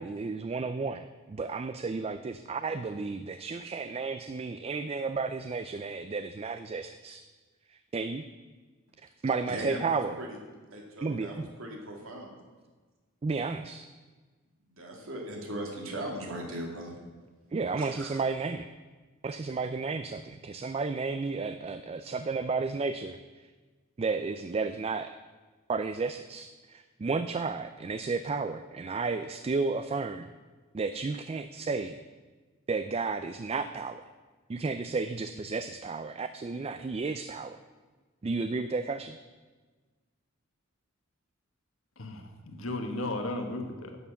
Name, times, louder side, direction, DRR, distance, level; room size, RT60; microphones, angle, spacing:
voice 1, 0.0-7.2 7.7-8.3 9.2-10.2 11.0-11.5 13.2-13.9 17.5-18.7 19.2-23.5 24.0-25.1 25.7-30.3 30.7-32.0 32.7-34.0 34.5-37.6 38.2-39.2, right 4 dB, 30° right, 10 dB, 0.3 m, -32 dB
voice 2, 9.5-10.4 10.7-12.3 14.7-17.0 17.8-18.2, right 1 dB, 70° right, 0 dB, 2.5 m, -39 dB
voice 3, 42.0-44.0, left 2 dB, 70° left, 5 dB, 1.4 m, -35 dB
11.0 x 7.0 x 7.1 m, 1.4 s
head